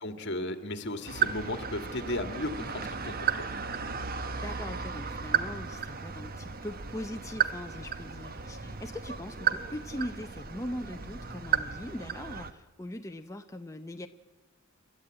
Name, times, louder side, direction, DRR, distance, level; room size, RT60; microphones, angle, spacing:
voice 1, 0.0-3.3, left 1 dB, 60° left, 8 dB, 1.9 m, -35 dB
sound 1, 1.1-12.5, right 7 dB, 50° right, 1.1 m, -34 dB
voice 2, 4.4-14.1, left 1 dB, 15° left, 5 dB, 0.7 m, -40 dB
29.0 x 12.5 x 8.9 m, 1.3 s
head